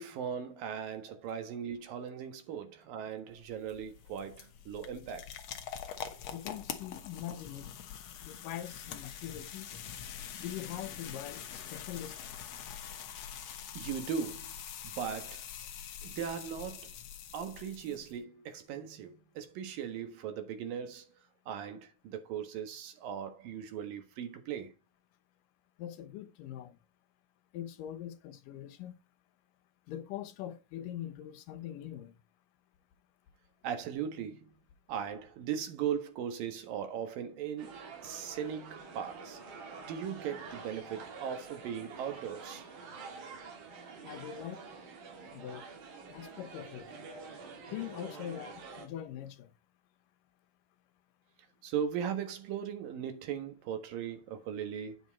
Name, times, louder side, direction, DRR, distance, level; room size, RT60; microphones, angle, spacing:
voice 1, 0.0-5.3 13.7-14.6 14.8-15.4 16.0-16.9 17.3-21.1 21.5-24.7 33.6-34.5 34.9-39.4 39.9-42.6 51.6-55.0, right 8 dB, 85° right, 3.2 m, -38 dB
sound 1, 3.3-18.2, left 9 dB, 60° left, 2.0 m, -45 dB
voice 2, 6.3-7.7 8.2-9.7 10.4-12.5 25.8-26.8 27.5-29.0 29.9-32.2 44.0-44.6 45.3-45.7 46.1-46.9 47.7-49.5, left 11 dB, 80° left, 2.5 m, -42 dB
sound 2, 37.6-48.9, right 4 dB, 70° right, 3.8 m, -47 dB
9.7 x 7.1 x 4.1 m
omnidirectional pair, 3.9 m